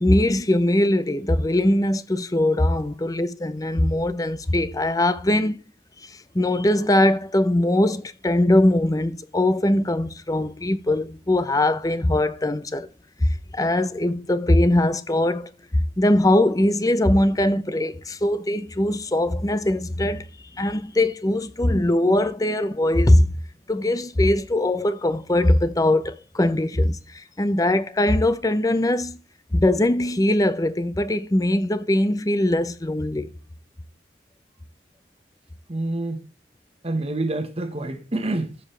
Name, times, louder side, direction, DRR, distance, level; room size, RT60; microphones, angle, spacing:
voice 1, 0.0-5.6 6.0-12.9 13.2-20.2 20.5-23.3 23.7-29.2 29.5-33.3, left 1 dB, 20° left, 0.6 m, -21 dB
voice 2, 35.7-36.2 36.8-38.7, right 2 dB, 35° right, 1.3 m, -27 dB
13.5 x 7.4 x 3.3 m
head